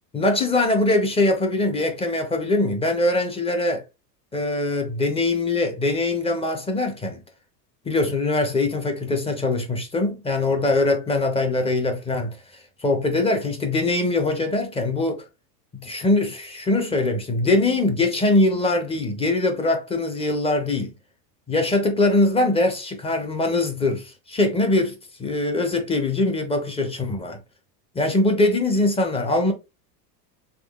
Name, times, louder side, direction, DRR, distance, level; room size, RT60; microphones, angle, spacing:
voice 1, 0.1-3.8 4.3-7.2 7.9-12.4 12.8-15.2 15.7-20.9 21.5-24.9 25.2-27.4 27.9-29.5, left 2 dB, 10° left, 0.5 m, -22 dB
3.6 x 3.1 x 2.3 m
supercardioid pair, 115°, 50 cm